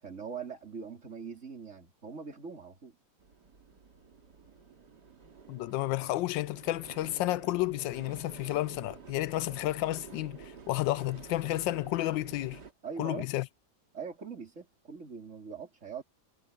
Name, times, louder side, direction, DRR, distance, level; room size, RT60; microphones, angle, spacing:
voice 1, 0.0-3.0 12.8-13.3 13.9-16.0, right 6 dB, 40° right, 4.2 m, -42 dB
sound 1, 3.2-12.7, right 5 dB, 65° right, 3.1 m, -50 dB
voice 2, 5.5-12.6 13.0-13.5, left 16 dB, 85° left, 1.3 m, -31 dB
omnidirectional pair, 2.0 m